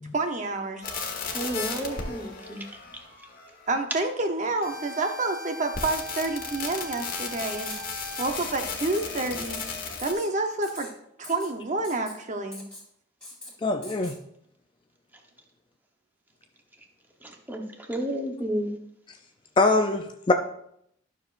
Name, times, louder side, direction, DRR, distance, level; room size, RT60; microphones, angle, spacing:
voice 1, 0.1-0.9 3.7-7.7 8.2-9.6 10.0-10.9 11.2-12.6, right 2 dB, 40° right, 5 dB, 0.8 m, -28 dB
sound 1, 0.8-3.7 4.6-10.1, left 4 dB, 45° left, 1.3 m, -35 dB
voice 2, 1.3-2.6 17.2-18.7, right 1 dB, 10° right, 2 dB, 1.0 m, -32 dB
Writing, 7.4-8.4 8.8-9.1 9.4-9.6 10.0-10.3 10.6-10.9 11.2-11.5 11.8-12.1 12.5-12.8 13.2-13.5 13.8-14.2, left 2 dB, 5° left, 2.3 m, -43 dB
voice 3, 13.6-14.1 19.6-20.3, left 3 dB, 25° left, 6 dB, 0.4 m, -23 dB
12.0 x 6.6 x 2.5 m, 0.73 s
head